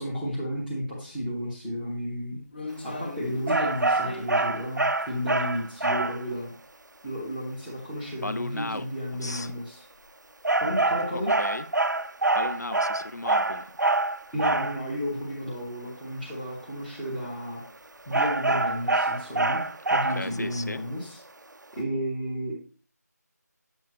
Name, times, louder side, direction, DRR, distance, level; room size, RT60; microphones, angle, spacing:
voice 1, 0.0-2.4 2.7-6.5 7.0-9.8 10.6-11.3 14.3-17.6 18.1-19.6 19.9-21.2 21.7-22.6, equal, 5° left, 0.7 m, -32 dB
sound 1, 1.2-1.3 1.7-6.8 7.2-7.3 8.0-8.1 8.4-8.5 9.5-9.6 9.9-10.1 10.6-10.7 11.0-11.1 13.3-13.4 14.6-15.0 15.4-15.8 16.1-16.3 16.6-16.7 17.8-18.0 18.6-19.3 19.7-19.8, left 2 dB, 30° left, 1.5 m, -41 dB
sound 2, 3.5-6.2 10.4-14.8 18.1-20.4, right 2 dB, 85° right, 0.5 m, -25 dB
voice 2, 8.2-8.9 9.1-9.6 11.1-11.6 12.3-13.8 19.9-20.8, left 2 dB, 65° left, 0.6 m, -35 dB
9.2 x 7.1 x 2.9 m
figure-of-eight pair, 170°, 10 cm